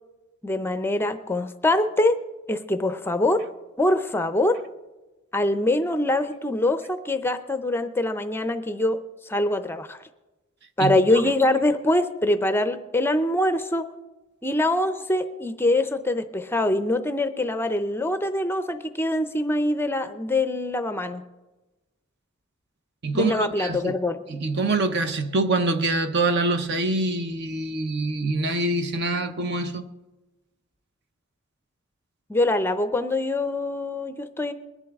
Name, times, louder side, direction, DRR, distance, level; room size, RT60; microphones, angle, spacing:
voice 1, 0.4-2.2 2.5-3.4 3.8-4.6 5.3-9.0 9.2-10.0 10.8-13.8 14.4-21.2 23.1-24.2 32.3-34.5, left 1 dB, 10° left, 0.5 m, -24 dB
voice 2, 23.0-23.9 24.3-29.9, right 2 dB, 50° right, 0.7 m, -25 dB
21.0 x 11.0 x 3.5 m
head